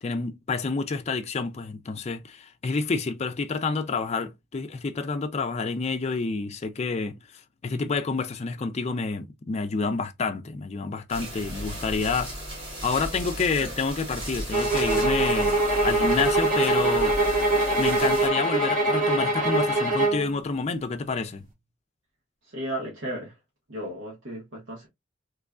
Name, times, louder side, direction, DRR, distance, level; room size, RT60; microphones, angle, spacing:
voice 1, 0.0-7.2 7.6-15.6 15.8-17.1 17.8-21.4, left 4 dB, 35° left, 0.4 m, -29 dB
sound 1, 11.1-18.3, equal, 25° right, 1.7 m, -35 dB
sound 2, 14.5-20.3, right 2 dB, 45° right, 1.4 m, -23 dB
voice 2, 22.4-23.3 23.7-24.9, right 1 dB, 85° right, 1.4 m, -34 dB
3.5 x 3.0 x 2.4 m
head